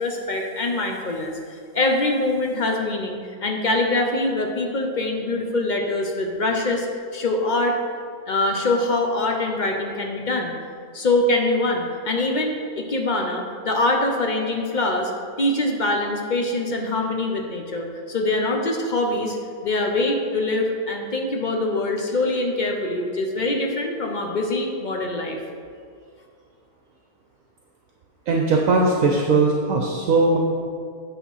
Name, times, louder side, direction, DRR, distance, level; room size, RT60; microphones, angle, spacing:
voice 1, 0.0-6.9 7.1-7.7 8.3-10.5 10.9-15.1 15.4-19.4 19.6-25.4, left 2 dB, 50° left, 2 dB, 0.5 m, -24 dB
voice 2, 28.3-30.4, right 3 dB, 70° right, 0 dB, 1.0 m, -19 dB
8.5 x 3.7 x 5.5 m, 2.2 s
omnidirectional pair, 1.6 m